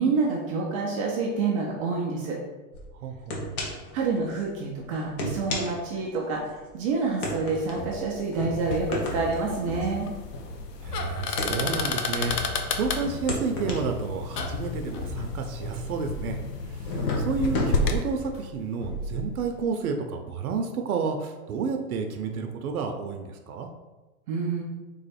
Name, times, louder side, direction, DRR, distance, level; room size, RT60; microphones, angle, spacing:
voice 1, 0.0-2.4 3.9-10.1 24.3-24.6, right 4 dB, 25° right, -2 dB, 0.3 m, -27 dB
sound 1, 2.7-2.9 3.3-4.0 4.3-4.4 5.0-6.6 7.2-12.7 13.1-16.2 16.7-17.7, left 2 dB, 65° left, 1.3 m, -33 dB
voice 2, 2.9-3.6 10.8-16.4 16.6-23.7, right 5 dB, 65° right, 5 dB, 0.7 m, -31 dB
sound 2, 7.5-19.7, equal, 25° left, 1.0 m, -39 dB
sound 3, 8.6-18.0, left 4 dB, 80° left, 0.8 m, -32 dB
3.6 x 3.1 x 4.2 m, 1.2 s
hypercardioid pair, 125°, 47 cm